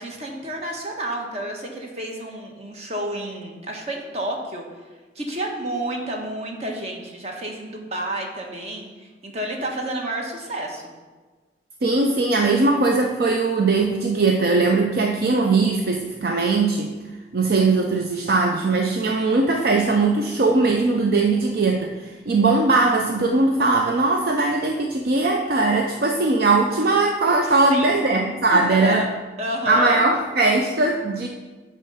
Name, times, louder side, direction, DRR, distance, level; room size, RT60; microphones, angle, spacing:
voice 1, 0.0-4.6 5.1-10.8 27.4-28.0 28.5-29.1 29.4-30.1, right 1 dB, 40° right, 1 dB, 1.2 m, -30 dB
voice 2, 11.8-16.9 17.3-29.0 29.7-31.3, right 3 dB, 60° right, 2 dB, 0.5 m, -20 dB
9.0 x 3.7 x 5.6 m, 1.3 s
head